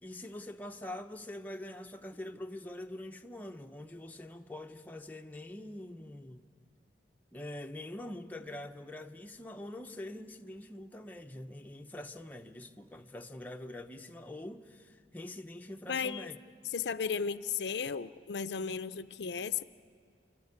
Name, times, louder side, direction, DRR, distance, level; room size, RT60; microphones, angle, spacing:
voice 1, 0.0-6.5 7.3-16.4, left 1 dB, 10° left, 0.7 m, -44 dB
voice 2, 15.9-16.3 16.7-19.6, left 6 dB, 80° left, 0.5 m, -34 dB
29.0 x 13.0 x 9.6 m
head